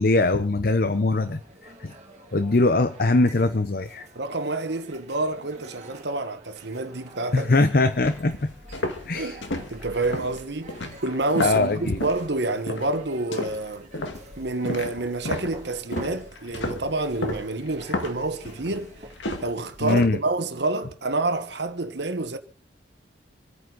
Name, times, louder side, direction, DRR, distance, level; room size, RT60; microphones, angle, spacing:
voice 1, 0.0-1.9 2.3-4.1 7.3-8.5 9.0-9.4 11.4-12.0 19.8-20.2, left 2 dB, 50° left, 0.7 m, -22 dB
sound 1, 0.6-19.1, right 2 dB, 35° right, 2.3 m, -49 dB
voice 2, 4.1-7.5 9.1-9.4 9.7-13.9 14.4-19.0 19.4-22.4, right 2 dB, 65° right, 1.3 m, -28 dB
sound 2, 7.9-12.3 12.7-13.0 13.3-20.1, left 1 dB, 80° left, 2.0 m, -33 dB
27.0 x 9.2 x 4.0 m
head